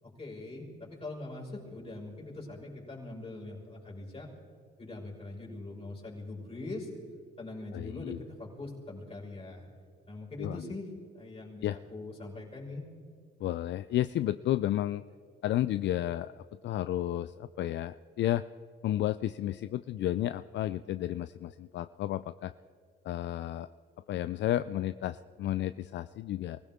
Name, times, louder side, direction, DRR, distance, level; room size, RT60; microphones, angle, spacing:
voice 1, 0.0-4.3 4.8-6.9 7.4-9.7 10.1-10.9 11.1-12.9, left 2 dB, 30° left, -3 dB, 5.6 m, -42 dB
voice 2, 7.7-8.2 10.4-10.6 11.6-11.8 13.4-15.0 15.4-18.4 18.8-22.5 23.0-23.7 24.1-26.6, left 13 dB, 65° left, 13 dB, 0.4 m, -32 dB
24.0 x 16.0 x 3.7 m, 2.3 s
cardioid pair, 90°, 20 cm